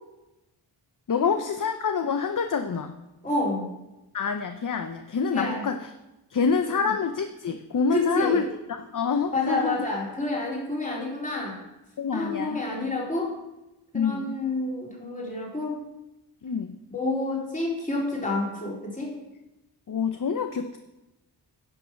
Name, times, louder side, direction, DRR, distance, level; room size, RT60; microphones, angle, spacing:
voice 1, 1.1-3.0 4.1-5.9 6.3-8.5 8.8-9.8 12.0-12.9 13.9-14.4 16.4-16.8 19.9-20.8, left 6 dB, 45° left, 7 dB, 0.7 m, -27 dB
voice 2, 3.2-3.7 5.3-5.6 6.8-6.9 7.9-8.4 9.3-11.6 12.1-13.3 13.9-15.8 16.9-19.1, left 2 dB, 15° left, -3 dB, 3.2 m, -28 dB
10.5 x 6.4 x 5.8 m, 0.98 s
wide cardioid pair, 70°, 44 cm